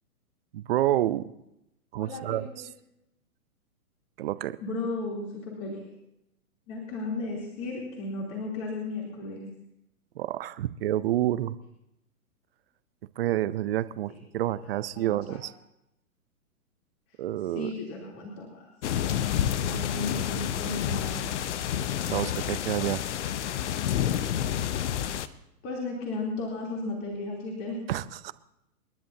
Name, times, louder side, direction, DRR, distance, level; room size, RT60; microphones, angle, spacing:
voice 1, 0.5-1.2 1.9-2.4 4.2-4.6 10.2-11.6 13.2-15.5 17.2-17.7 22.1-23.0 27.9-28.3, right 13 dB, 45° right, 16 dB, 0.6 m, -28 dB
voice 2, 2.0-2.6 4.6-5.9 6.7-9.4 14.1-14.2 14.9-15.4 17.1-17.2 17.5-18.7 19.6-21.3 25.6-27.8, left 2 dB, 30° left, -3 dB, 3.4 m, -35 dB
sound 1, 18.8-25.3, left 10 dB, 50° left, 0.9 m, -29 dB
29.0 x 11.0 x 2.8 m, 0.84 s
hypercardioid pair, 125°, 44 cm